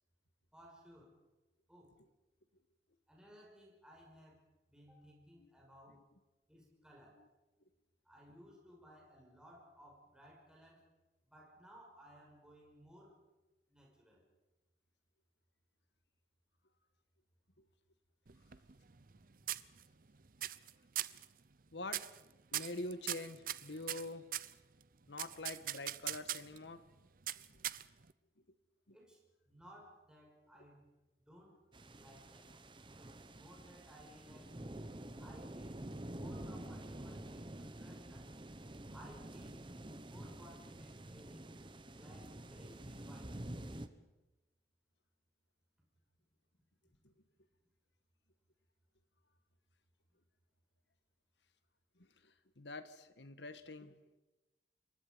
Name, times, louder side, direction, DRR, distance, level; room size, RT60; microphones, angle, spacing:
voice 1, 0.5-1.2 1.7-2.0 3.1-4.4 4.7-6.0 6.5-7.2 8.0-10.9 11.2-13.2 13.7-14.2 28.9-29.2 29.5-30.9 31.3-31.6 32.0-32.5 33.0-34.6 35.2-35.9 36.1-38.3 38.9-39.6 40.0-41.6 41.9-43.4, equal, 5° right, -2 dB, 5.7 m, -59 dB
sound 1, 18.3-19.2 19.5-20.1 20.4-20.7 21.0-21.3 21.9-22.2 22.5-24.5 25.2-26.6 27.3-28.1, right 13 dB, 50° right, 0.7 m, -40 dB
voice 2, 21.7-22.1 22.5-24.3 25.1-26.8 27.4-27.6 28.9-29.0 47.0-47.1 52.0-54.0, left 2 dB, 80° left, 11 dB, 1.6 m, -46 dB
sound 2, 31.7-43.9, right 1 dB, 30° right, 1.1 m, -48 dB
26.0 x 22.5 x 5.3 m, 1.0 s
head